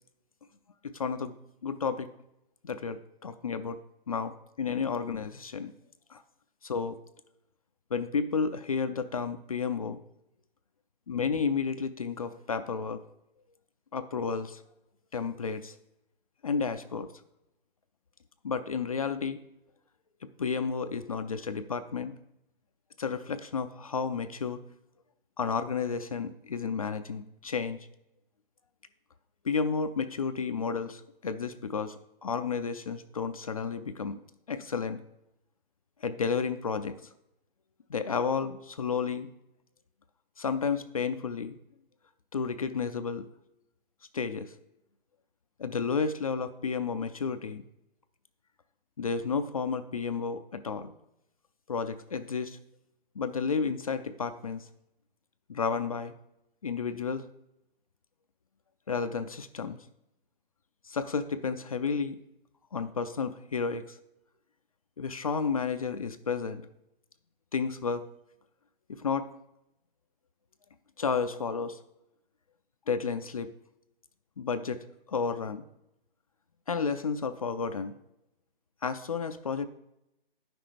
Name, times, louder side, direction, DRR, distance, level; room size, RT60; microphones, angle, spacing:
voice 1, 0.8-1.3 1.6-2.1 2.6-3.8 4.1-5.7 6.1-6.2 6.6-7.0 7.9-10.0 11.1-13.0 13.9-14.6 15.1-15.8 16.4-17.1 18.4-19.4 20.4-22.1 23.0-24.6 25.4-27.8 29.4-34.2 34.5-35.0 36.0-37.0 37.9-39.3 40.4-41.6 42.3-43.3 44.1-44.5 45.6-47.6 49.0-50.9 51.7-52.6 53.2-54.7 55.5-56.1 56.6-57.3 58.9-59.8 60.9-62.2 62.7-64.0 65.0-66.7 67.5-68.0 68.9-69.3 71.0-71.8 72.9-73.5 74.4-74.8 75.1-75.6 76.7-77.9 78.8-79.7, left 5 dB, 40° left, 10 dB, 0.4 m, -31 dB
9.7 x 6.0 x 4.9 m, 0.85 s
figure-of-eight pair, 150°, 29 cm